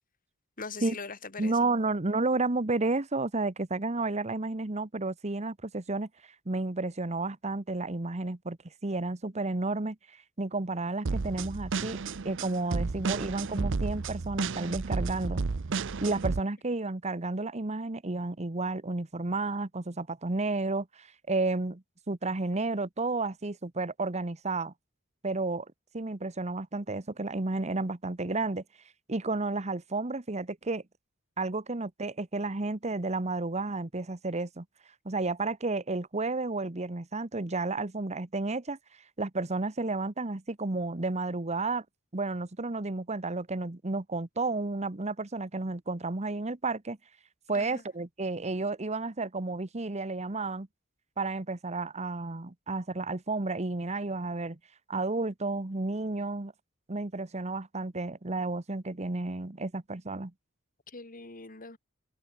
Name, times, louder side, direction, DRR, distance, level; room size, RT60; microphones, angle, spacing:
voice 1, 0.6-1.7 47.5-47.8 60.9-61.8, left 4 dB, 40° left, 2.9 m, -41 dB
voice 2, 1.4-6.1 6.5-8.6 8.8-12.0 12.2-15.4 16.0-24.7 25.2-25.7 25.9-28.6 29.1-30.8 31.4-34.6 35.0-38.8 39.2-41.8 42.1-47.0 47.5-50.7 51.2-54.6 54.9-56.5 56.9-60.3, right 3 dB, 30° right, 1.1 m, -32 dB
sound 1, 11.1-16.4, right 4 dB, 65° right, 0.7 m, -32 dB
head